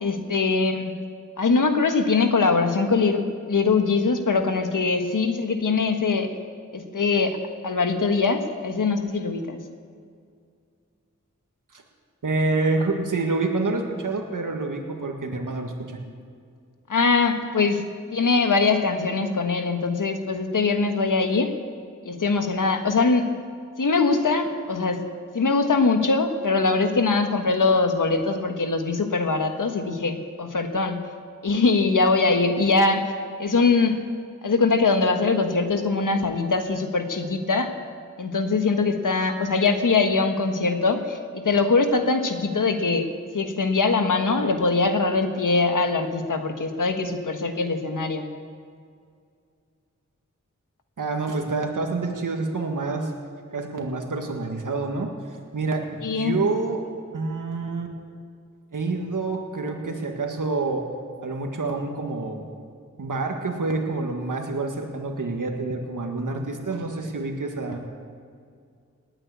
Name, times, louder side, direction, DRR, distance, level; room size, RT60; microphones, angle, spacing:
voice 1, 0.0-0.9 1.4-3.2 3.5-6.3 6.7-7.4 7.6-9.6 16.9-17.8 18.1-21.5 22.0-23.2 23.8-25.0 25.3-31.0 31.4-33.0 33.4-34.0 34.4-37.7 38.2-43.0 43.3-48.3 56.0-56.3, left 4 dB, 80° left, 6 dB, 1.4 m, -22 dB
voice 2, 12.2-16.0 51.0-53.1 53.5-55.1 55.5-56.8 57.1-57.9 58.7-60.9 61.2-62.5 63.0-67.8, right 3 dB, 90° right, 3 dB, 1.8 m, -27 dB
19.0 x 8.9 x 8.3 m, 2.2 s
wide cardioid pair, 50°, 31 cm